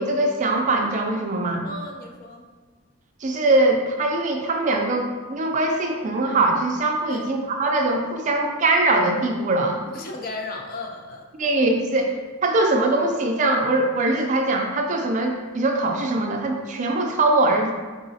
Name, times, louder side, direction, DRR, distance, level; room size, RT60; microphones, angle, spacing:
voice 1, 0.0-1.6 3.2-9.8 11.4-12.1 12.4-17.7, right 2 dB, 35° right, 2 dB, 0.4 m, -22 dB
voice 2, 1.6-2.4 7.1-7.3 9.9-11.3, left 2 dB, 40° left, 2 dB, 0.4 m, -35 dB
4.1 x 3.8 x 2.7 m, 1.3 s
head